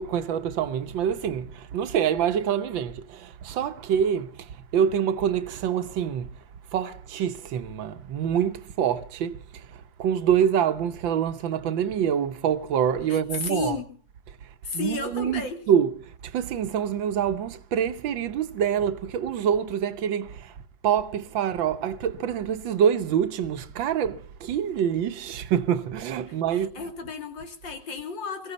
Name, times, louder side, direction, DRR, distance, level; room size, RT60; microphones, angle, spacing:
voice 1, 0.0-6.3 6.7-13.8 14.7-15.4 15.7-20.5 20.8-26.8, right 8 dB, 90° right, 1.7 m, -26 dB
voice 2, 13.1-13.8 14.6-15.6 26.3-28.5, left 5 dB, 80° left, 3.2 m, -33 dB
22.0 x 15.5 x 4.1 m
omnidirectional pair, 2.0 m